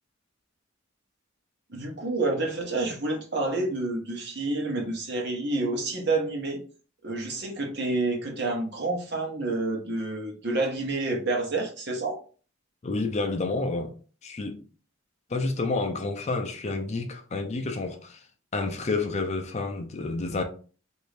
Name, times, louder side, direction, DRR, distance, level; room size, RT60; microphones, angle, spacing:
voice 1, 1.7-6.6 7.0-12.2, right 2 dB, 55° right, 1.0 m, -29 dB
voice 2, 12.8-13.9 14.2-14.6 15.3-18.2 18.5-20.4, left 3 dB, 35° left, 0.4 m, -29 dB
3.0 x 2.6 x 3.2 m
head